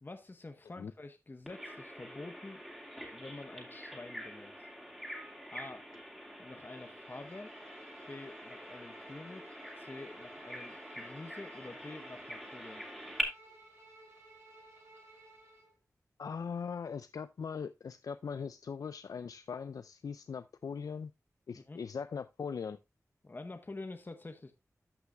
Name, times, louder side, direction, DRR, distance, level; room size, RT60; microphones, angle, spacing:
voice 1, 0.0-2.6 3.1-4.5 5.5-5.9 6.4-7.5 8.1-12.8 21.5-21.8 23.2-24.5, left 2 dB, 35° left, 0.9 m, -47 dB
Bird vocalization bird call bird song, 1.5-13.2, equal, 5° right, 2.8 m, -45 dB
Bowed string instrument, 6.6-15.7, right 1 dB, 45° right, 3.3 m, -57 dB
voice 2, 16.2-21.1 21.5-22.8, left 6 dB, 80° left, 0.4 m, -40 dB
13.5 x 5.7 x 2.3 m
wide cardioid pair, 70°, 6 cm